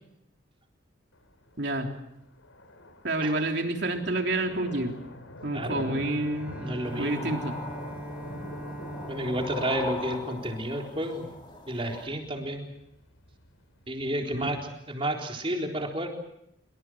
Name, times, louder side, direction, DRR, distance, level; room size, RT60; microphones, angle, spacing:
sound 1, 1.1-15.0, left 1 dB, 85° left, 4.7 m, -45 dB
voice 1, 1.6-1.9 3.0-5.0 5.4-6.6 7.0-7.5 14.3-14.5, right 2 dB, 55° right, 3 dB, 3.5 m, -28 dB
voice 2, 5.5-6.0 6.6-7.3 9.1-11.3 11.7-12.7 13.9-14.6 14.9-16.1, right 1 dB, 25° right, 1 dB, 4.0 m, -31 dB
Bowed string instrument, 5.7-11.3, right 1 dB, 5° right, 2.5 m, -42 dB
sound 2, 6.8-12.1, left 2 dB, 25° left, 4.4 m, -40 dB
26.5 x 24.5 x 6.3 m, 0.79 s
head